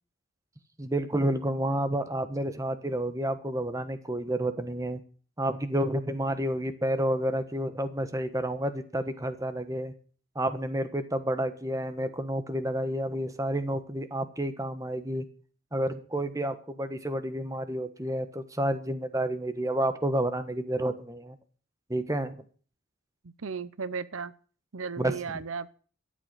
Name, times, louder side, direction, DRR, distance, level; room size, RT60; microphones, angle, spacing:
voice 1, 0.8-5.0 5.4-9.9 10.3-15.2 15.7-21.4 21.9-22.4 25.0-25.1, right 1 dB, 15° right, 10 dB, 1.2 m, -30 dB
voice 2, 23.2-24.3 24.7-25.7, right 5 dB, 75° right, 17 dB, 0.7 m, -35 dB
13.0 x 8.4 x 8.9 m, 0.42 s
head